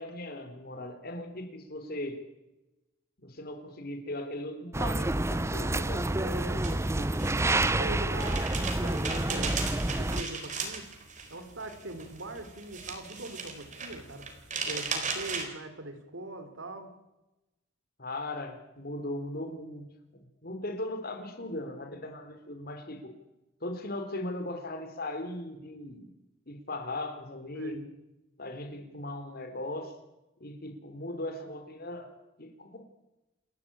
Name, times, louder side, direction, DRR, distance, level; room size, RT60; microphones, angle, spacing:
voice 1, 0.0-2.2 3.2-6.1 6.4-7.3 18.0-19.9 20.1-23.2 23.6-26.1 26.5-27.8 28.4-29.9 30.4-32.1 32.4-32.9, left 1 dB, 50° left, 7 dB, 3.5 m, -38 dB
sound 1, 4.7-10.2, right 2 dB, 15° right, 0.7 m, -28 dB
sound 2, 6.0-15.5, right 5 dB, 40° right, 4.1 m, -37 dB
voice 2, 6.1-6.7 7.3-9.6 9.8-10.8 11.3-14.3 14.6-17.0 27.5-27.8, right 2 dB, 75° right, 9 dB, 3.6 m, -41 dB
28.5 x 13.0 x 8.7 m, 0.99 s
head